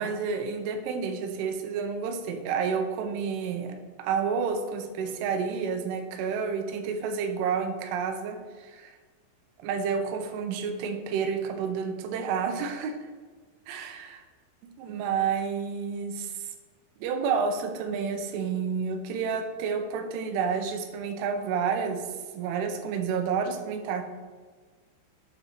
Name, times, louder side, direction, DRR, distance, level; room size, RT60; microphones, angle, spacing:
voice 1, 0.0-9.0 9.6-13.1 13.7-14.2 14.8-16.5 17.0-22.0 22.3-24.0, right 6 dB, 90° right, 6 dB, 3.3 m, -30 dB
8.0 x 4.4 x 5.7 m, 1.5 s
omnidirectional pair, 5.5 m